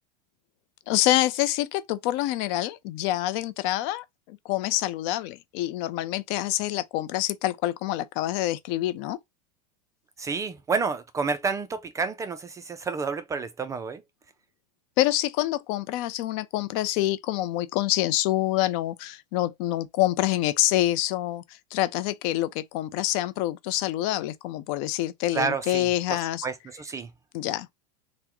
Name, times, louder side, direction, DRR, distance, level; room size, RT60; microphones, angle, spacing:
voice 1, 0.9-9.2 15.0-21.4 21.7-26.5 27.3-27.7, left 15 dB, 50° left, 0.4 m, -26 dB
voice 2, 10.2-14.0 25.3-27.1, right 5 dB, 15° right, 0.3 m, -30 dB
3.5 x 2.1 x 2.9 m
hypercardioid pair, 115°, 20 cm